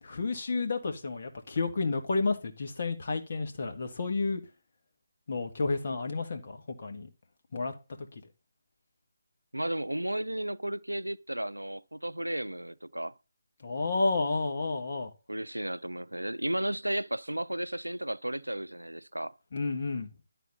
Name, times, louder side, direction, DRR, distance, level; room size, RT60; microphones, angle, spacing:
voice 1, 0.0-4.4 5.3-7.1 7.5-8.1 13.6-15.1 19.5-20.1, left 3 dB, 45° left, 1.7 m, -31 dB
voice 2, 9.5-13.1 15.3-19.4, right 1 dB, 90° right, 0.5 m, -34 dB
11.5 x 4.2 x 5.3 m
figure-of-eight pair, 150°, 0 cm